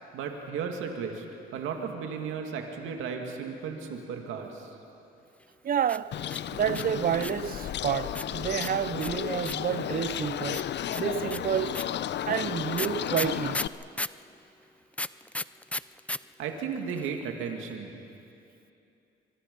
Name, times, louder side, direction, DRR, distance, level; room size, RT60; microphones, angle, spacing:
voice 1, 0.1-1.3 1.5-4.7 16.4-17.9, right 6 dB, 90° right, 2.3 m, -35 dB
voice 2, 5.6-6.1 6.5-10.6 11.0-11.8 12.3-13.6, right 9 dB, 45° right, 0.6 m, -29 dB
sound 1, 5.8-7.5 8.1-9.7 10.5-14.2 14.9-16.2 16.4-16.5 16.7-17.2, left 1 dB, 5° left, 0.4 m, -34 dB
Bird, 6.1-13.7, left 10 dB, 60° left, 0.7 m, -33 dB
25.0 x 24.0 x 5.4 m
cardioid pair, 90°, 20 cm